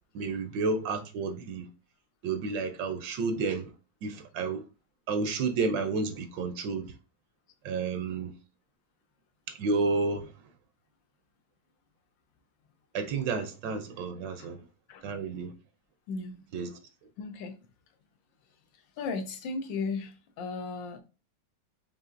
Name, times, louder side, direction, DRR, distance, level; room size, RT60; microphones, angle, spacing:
voice 1, 0.1-1.7 2.2-3.7 4.0-4.6 5.1-7.0 7.6-8.3 9.5-10.3 12.9-14.6 15.0-15.5 16.5-16.8, right 4 dB, 80° right, 1.2 m, -31 dB
voice 2, 16.1-16.4 17.2-17.5 19.0-21.0, left 4 dB, 90° left, 1.4 m, -35 dB
5.5 x 2.6 x 2.5 m
omnidirectional pair, 2.0 m